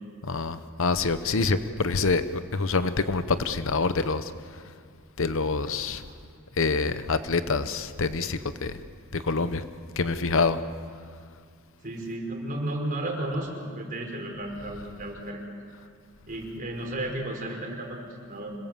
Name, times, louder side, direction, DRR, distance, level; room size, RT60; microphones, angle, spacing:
voice 1, 0.2-4.3 5.2-6.0 6.6-8.8 9.1-9.6 10.0-10.6, left 4 dB, 65° left, 12 dB, 0.9 m, -26 dB
voice 2, 11.8-15.4 16.3-18.5, right 1 dB, 40° right, 1 dB, 4.7 m, -33 dB
26.5 x 21.5 x 7.5 m, 2.1 s
head